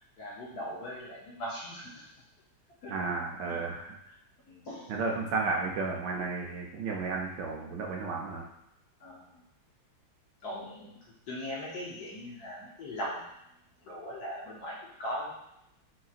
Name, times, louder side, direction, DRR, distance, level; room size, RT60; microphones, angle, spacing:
voice 1, 0.2-2.0 2.8-3.0 3.5-3.6 4.1-4.2 4.5-4.9 6.8-7.0 9.0-9.4 10.4-11.0 11.3-13.3 13.8-15.4, equal, 60° left, -4 dB, 1.2 m, -40 dB
voice 2, 2.9-4.0 4.9-8.4, right 4 dB, 70° right, 0 dB, 1.1 m, -33 dB
4.5 x 3.8 x 2.4 m, 0.81 s
omnidirectional pair, 2.2 m